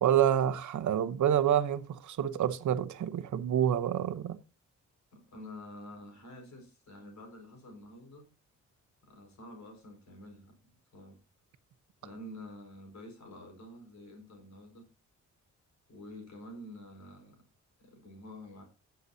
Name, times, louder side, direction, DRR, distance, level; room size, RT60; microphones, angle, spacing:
voice 1, 0.0-4.4, right 10 dB, 70° right, 0.9 m, -28 dB
voice 2, 5.1-8.3 9.0-11.2 12.0-14.9 15.9-17.4 17.8-18.6, left 1 dB, 65° left, 5.0 m, -49 dB
16.5 x 7.0 x 2.7 m
cardioid pair, 90°, 31 cm